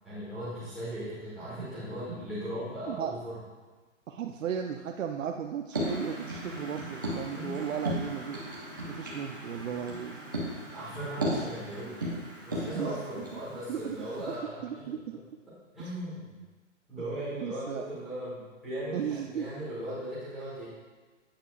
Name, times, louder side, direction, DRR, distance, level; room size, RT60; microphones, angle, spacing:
voice 1, 0.0-3.3 7.3-7.6 10.7-14.9 15.7-16.3 16.9-20.7, right 1 dB, ahead, -14 dB, 1.3 m, -38 dB
voice 2, 4.1-8.5 8.9-10.2 11.2-11.3 12.7-13.4 13.7-15.2 15.8-15.9 17.4-17.9 18.9-19.5, right 8 dB, 85° right, 3 dB, 0.6 m, -36 dB
sound 1, 5.7-14.4, right 1 dB, 15° right, 0.5 m, -36 dB
8.8 x 5.5 x 2.5 m, 1.3 s
hypercardioid pair, 170°, 38 cm